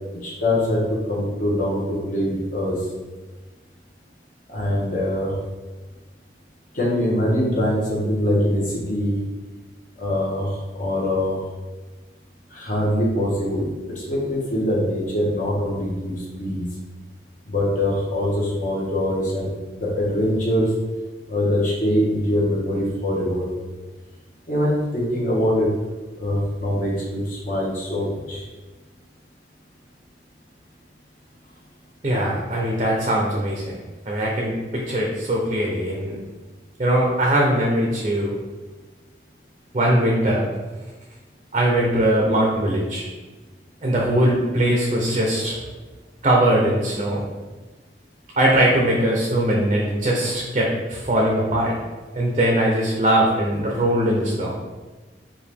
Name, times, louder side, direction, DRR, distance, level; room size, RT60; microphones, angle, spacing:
voice 1, 0.2-2.8 4.5-5.3 6.7-9.2 10.0-11.4 12.5-13.7 14.0-16.7 17.5-19.5 19.8-20.7 21.3-23.4 24.5-25.7 26.2-28.4, left 1 dB, 45° left, -5 dB, 1.1 m, -23 dB
voice 2, 32.0-33.8 34.1-36.2 36.8-38.3 39.7-40.5 41.5-43.0 43.8-45.6 46.2-47.3 48.4-51.8 52.1-54.5, right 1 dB, 35° right, -2 dB, 0.5 m, -21 dB
4.8 x 2.6 x 3.4 m, 1.3 s
head